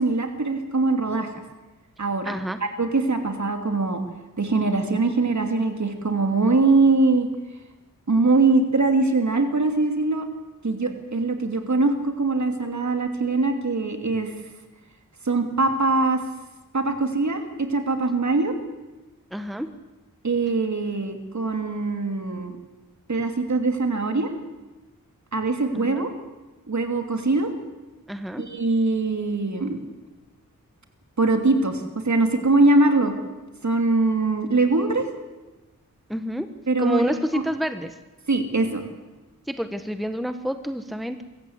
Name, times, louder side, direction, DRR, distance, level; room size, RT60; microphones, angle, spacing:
voice 1, 0.0-1.3 2.0-2.3 2.8-4.0 4.4-7.3 8.1-10.3 10.6-14.3 15.2-16.2 16.7-18.5 20.2-22.5 23.1-24.3 25.3-26.1 26.7-27.5 28.4-29.8 31.2-33.2 33.6-35.1 36.7-37.0 37.3-37.4 38.3-38.8, right 3 dB, 55° right, 5 dB, 3.0 m, -22 dB
voice 2, 2.2-2.6 19.3-19.7 25.7-26.1 28.1-28.4 36.1-36.5 36.8-38.0 39.5-41.2, equal, ahead, 9 dB, 1.2 m, -28 dB
24.5 x 14.5 x 8.2 m, 1.2 s
wide cardioid pair, 80°, 34 cm